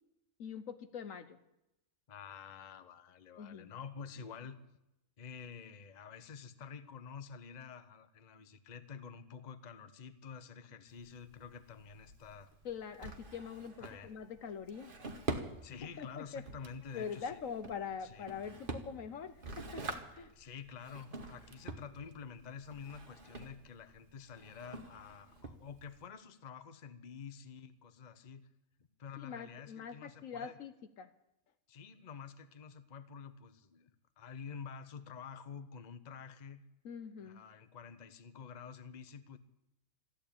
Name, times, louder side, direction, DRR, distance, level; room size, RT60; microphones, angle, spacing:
voice 1, 0.4-1.4 3.4-3.7 12.6-13.8 14.0-14.9 16.0-16.4 16.9-20.3 29.2-31.1 36.8-37.4, left 6 dB, 65° left, 11 dB, 1.2 m, -44 dB
voice 2, 2.1-4.6 5.2-12.5 13.8-14.1 15.6-17.4 18.0-18.3 20.3-28.5 29.0-30.6 31.7-33.9 34.2-36.6 37.2-39.4, left 6 dB, 35° left, 10 dB, 0.9 m, -49 dB
Drawer open or close, 10.9-26.1, right 3 dB, 40° right, 1.4 m, -46 dB
14.5 x 11.5 x 8.7 m, 0.88 s
omnidirectional pair, 1.5 m